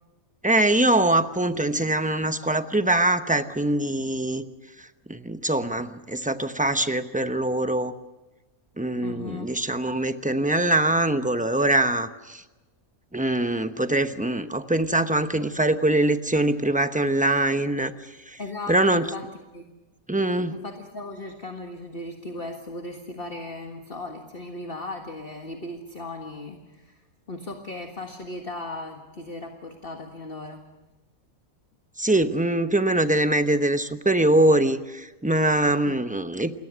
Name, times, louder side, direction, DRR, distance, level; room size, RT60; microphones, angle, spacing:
voice 1, 0.4-4.4 4.8-7.9 8.8-12.4 13.1-17.9 18.3-18.4 18.7-19.1 20.1-20.6 32.0-36.5, right 1 dB, 5° right, 9 dB, 0.7 m, -23 dB
voice 2, 9.0-9.5 18.4-19.2 19.5-19.7 20.5-27.0 27.3-30.6 35.9-36.0, left 2 dB, 40° left, 3 dB, 1.9 m, -37 dB
28.5 x 22.0 x 6.3 m, 1.1 s
omnidirectional pair, 1.5 m